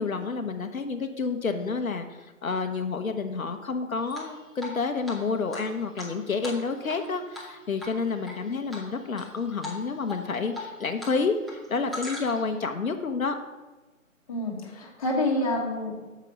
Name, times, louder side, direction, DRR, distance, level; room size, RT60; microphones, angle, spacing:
voice 1, 0.0-13.3, left 4 dB, 70° left, 6 dB, 0.8 m, -29 dB
Drip, 4.1-4.8 5.1-5.2 5.5-7.1 7.3-7.5 7.8-8.3 8.7-9.3 9.6-9.8 10.1-11.1 11.4-12.5, left 2 dB, ahead, 0.4 m, -39 dB
voice 2, 14.3-16.1, left 1 dB, 25° left, -1 dB, 1.2 m, -28 dB
6.6 x 5.0 x 6.3 m, 1.2 s
figure-of-eight pair, 150°, 42 cm